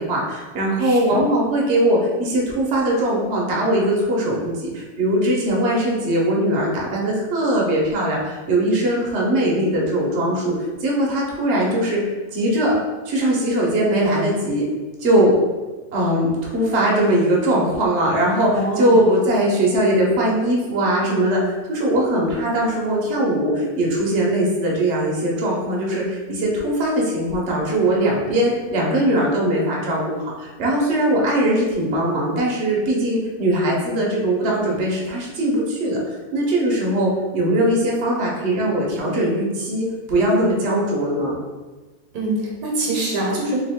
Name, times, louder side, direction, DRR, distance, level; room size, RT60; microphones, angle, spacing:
voice 1, 0.0-12.0 12.3-12.8 13.1-14.6 15.0-15.3 15.9-41.3, right 1 dB, 50° right, -3 dB, 0.9 m, -20 dB
voice 2, 0.8-1.2 18.5-19.1 42.1-43.6, right 2 dB, 70° right, -2 dB, 1.2 m, -24 dB
3.4 x 2.9 x 3.5 m, 1.2 s
omnidirectional pair, 1.7 m